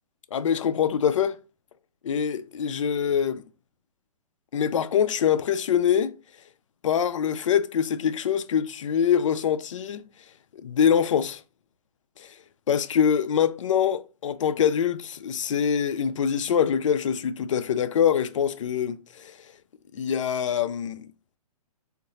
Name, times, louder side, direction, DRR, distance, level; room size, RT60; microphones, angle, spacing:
voice 1, 0.3-1.4 2.0-3.4 4.5-6.1 6.8-10.0 10.5-11.4 12.2-12.3 12.7-19.4 19.9-21.1, left 8 dB, 55° left, 0.4 m, -24 dB
3.6 x 2.6 x 3.9 m
figure-of-eight pair, 125°, 20 cm